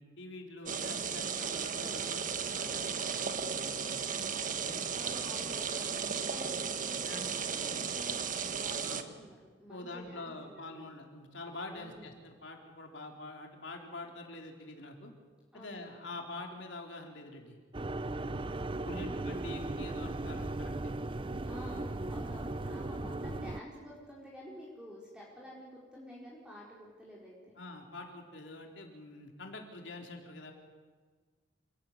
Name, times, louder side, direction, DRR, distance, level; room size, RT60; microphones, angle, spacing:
voice 1, 0.0-2.9 3.4-5.2 6.8-7.5 8.8-9.0 9.7-15.1 15.5-17.6 18.0-20.9 27.5-30.5, left 2 dB, 70° left, 2 dB, 4.1 m, -46 dB
sound 1, 0.7-9.0, right 6 dB, 45° right, 1.6 m, -35 dB
voice 2, 4.9-8.3 8.6-10.8 11.7-12.0 15.5-15.9 19.0-19.2 21.4-27.5, equal, 5° right, -5 dB, 4.5 m, -50 dB
sound 2, 17.7-23.6, right 2 dB, 25° right, 0.7 m, -37 dB
28.5 x 18.5 x 9.7 m, 1.5 s
head